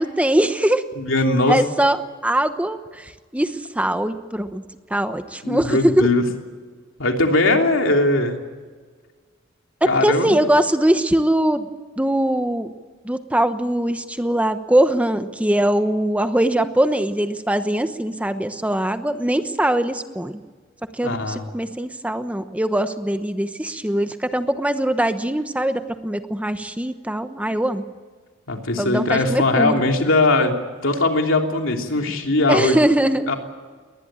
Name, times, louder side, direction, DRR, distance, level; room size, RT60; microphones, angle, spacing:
voice 1, 0.0-0.8 1.5-4.6 4.9-6.1 9.8-11.7 12.0-12.7 13.0-20.4 21.0-27.9 28.8-29.9 32.5-33.3, right 1 dB, 5° right, 9 dB, 1.0 m, -21 dB
voice 2, 1.0-1.6 5.4-6.2 7.0-8.4 9.8-10.4 21.0-21.4 28.5-32.8 33.2-33.4, left 2 dB, 75° left, 3 dB, 3.2 m, -20 dB
22.0 x 20.0 x 9.0 m, 1.5 s
head